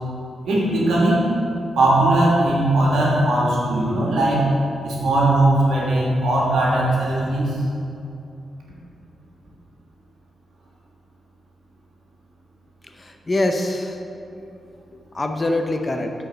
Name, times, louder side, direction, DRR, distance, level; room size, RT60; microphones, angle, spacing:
voice 1, 0.4-1.3 1.7-4.5 4.8-7.6, right 1 dB, 85° right, -4 dB, 1.6 m, -19 dB
voice 2, 12.8-14.0 14.9-16.1, left 2 dB, 30° left, 5 dB, 0.6 m, -24 dB
7.6 x 4.6 x 4.5 m, 2.7 s
cardioid pair, 65°, 0 cm